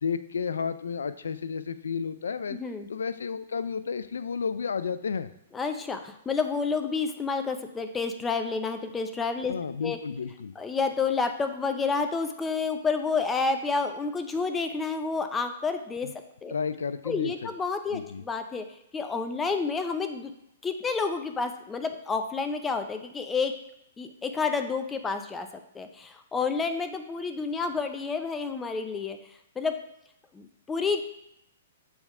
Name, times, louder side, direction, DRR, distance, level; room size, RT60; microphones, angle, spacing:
voice 1, 0.0-2.6 2.9-5.3 9.5-10.5 16.0-16.1 16.5-17.5 17.9-18.2, left 6 dB, 90° left, 13 dB, 0.4 m, -32 dB
voice 2, 5.5-9.5 9.8-10.0 10.6-16.1 16.4-16.5 17.1-18.6 18.9-20.3 20.6-23.5 24.0-25.5 25.7-29.2 29.6-29.7 30.3-31.0, left 4 dB, 15° left, 7 dB, 0.6 m, -29 dB
7.1 x 3.5 x 5.4 m, 0.78 s
hypercardioid pair, 140°, 0 cm